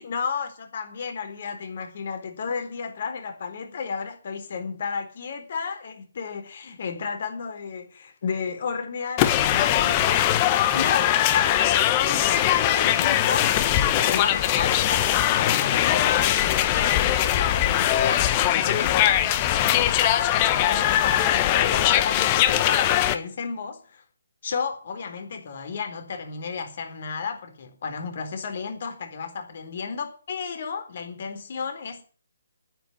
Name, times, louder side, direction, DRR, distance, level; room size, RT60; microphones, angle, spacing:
voice 1, 0.0-24.0 24.4-32.0, left 5 dB, 50° left, 3.9 m, -33 dB
sound 1, 9.2-23.1, left 12 dB, 30° left, 1.3 m, -21 dB
9.7 x 9.3 x 9.5 m
figure-of-eight pair, 140°, 0 cm